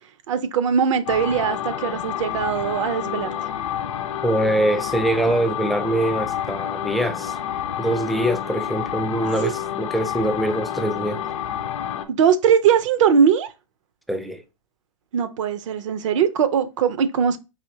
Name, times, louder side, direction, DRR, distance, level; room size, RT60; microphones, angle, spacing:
voice 1, 0.3-3.3 9.4-9.5 12.1-13.5 15.1-17.4, right 7 dB, 60° right, 0.5 m, -20 dB
sound 1, 1.1-12.1, left 10 dB, 60° left, 0.6 m, -29 dB
voice 2, 4.2-7.4 7.8-11.2 14.1-14.4, right 1 dB, ahead, 0.3 m, -23 dB
4.2 x 2.7 x 2.7 m
hypercardioid pair, 115°, 18 cm